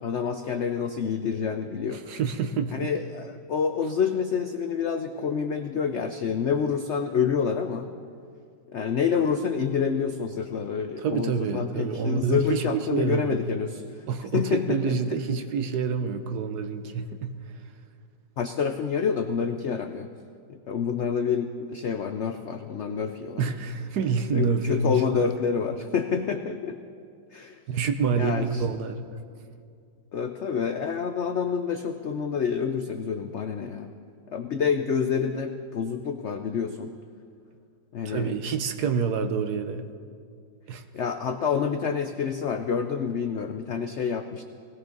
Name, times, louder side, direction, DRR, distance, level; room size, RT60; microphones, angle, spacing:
voice 1, 0.0-2.0 2.7-7.9 8.7-13.8 14.3-14.8 18.4-20.1 20.5-23.4 24.3-26.8 27.3-27.6 28.2-28.6 30.1-33.9 34.3-36.9 37.9-38.4 40.9-44.4, left 6 dB, 85° left, 7 dB, 0.6 m, -28 dB
voice 2, 1.9-2.9 11.0-13.4 14.1-17.4 23.4-25.3 27.7-29.1 38.0-39.9 40.7-40.8, right 5 dB, 65° right, 8 dB, 1.3 m, -27 dB
19.5 x 17.0 x 3.9 m, 2.3 s
omnidirectional pair, 2.0 m